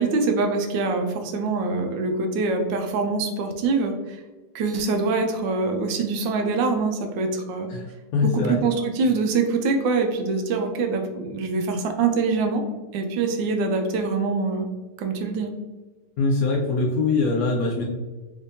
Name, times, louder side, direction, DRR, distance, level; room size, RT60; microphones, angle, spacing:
voice 1, 0.0-4.2 4.5-7.7 8.2-12.6 12.9-14.7 15.0-15.5, right 4 dB, 90° right, 5 dB, 1.3 m, -24 dB
voice 2, 8.1-8.6 16.2-17.8, left 3 dB, 70° left, -1 dB, 0.9 m, -22 dB
3.6 x 3.5 x 2.6 m, 1.3 s
omnidirectional pair, 2.0 m